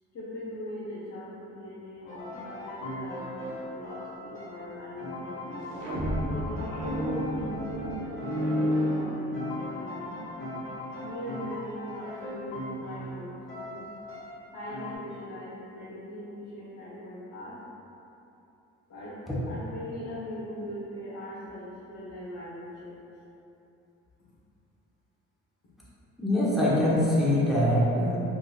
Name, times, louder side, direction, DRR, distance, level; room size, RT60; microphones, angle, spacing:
voice 1, 0.1-3.4 3.7-5.7 6.3-10.1 11.0-13.8 14.5-17.6 18.9-19.2 19.5-23.0, left 1 dB, 65° left, -11 dB, 0.9 m, -40 dB
sound 1, 2.1-15.0, left 1 dB, 40° left, 1.4 m, -39 dB
sound 2, 5.6-9.8, equal, 75° right, 0.8 m, -30 dB
voice 2, 26.2-28.2, left 1 dB, ahead, -9 dB, 0.8 m, -23 dB
3.7 x 2.4 x 2.3 m, 2.8 s
cardioid pair, 90°, 30 cm